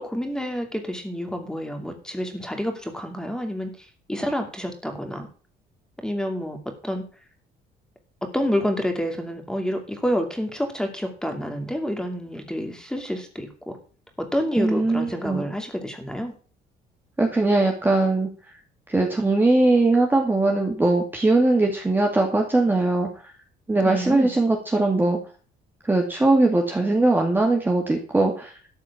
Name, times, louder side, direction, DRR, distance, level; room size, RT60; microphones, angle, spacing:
voice 1, 0.0-5.3 6.0-6.6 6.8-7.0 8.2-13.8 14.2-16.3 23.8-24.3, equal, 5° left, 5 dB, 2.6 m, -28 dB
voice 2, 14.6-15.5 17.2-18.3 18.9-23.1 23.7-25.2 25.9-28.5, right 2 dB, 10° right, 1 dB, 2.2 m, -20 dB
13.0 x 4.9 x 8.4 m, 0.39 s
cardioid pair, 110°, 17 cm